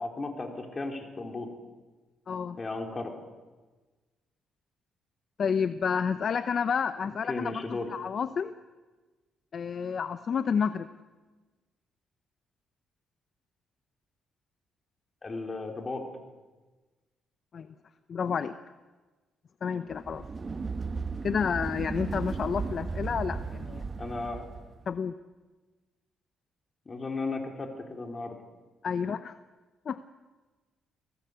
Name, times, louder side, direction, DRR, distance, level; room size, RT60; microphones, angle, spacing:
voice 1, 0.0-1.5 2.6-3.1 7.3-7.9 15.2-16.0 24.0-24.4 26.9-28.4, left 3 dB, 30° left, 3 dB, 4.3 m, -35 dB
voice 2, 2.3-2.6 5.4-7.6 7.9-8.5 9.5-10.9 17.5-17.7 18.1-18.5 19.6-20.2 21.2-23.8 24.9-25.1 28.8-29.4 29.9-30.0, left 6 dB, 50° left, 12 dB, 0.8 m, -30 dB
sound 1, 19.9-24.8, right 4 dB, 35° right, 1.2 m, -35 dB
26.5 x 18.0 x 8.2 m, 1.3 s
cardioid pair, 90°, 0 cm